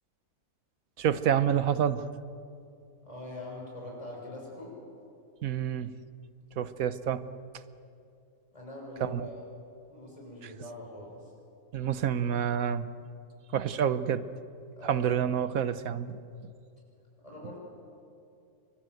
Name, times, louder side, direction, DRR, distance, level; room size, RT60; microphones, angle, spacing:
voice 1, 1.0-2.1 5.4-6.0 6.6-7.2 9.0-9.3 11.7-12.9 13.5-14.2 14.8-16.2, right 9 dB, 75° right, 13 dB, 1.3 m, -28 dB
voice 2, 3.0-4.8 8.5-9.4 9.9-11.3 14.8-15.1 17.2-17.6, left 1 dB, 25° left, -3 dB, 6.6 m, -43 dB
28.5 x 24.0 x 7.9 m, 2.6 s
omnidirectional pair, 1.5 m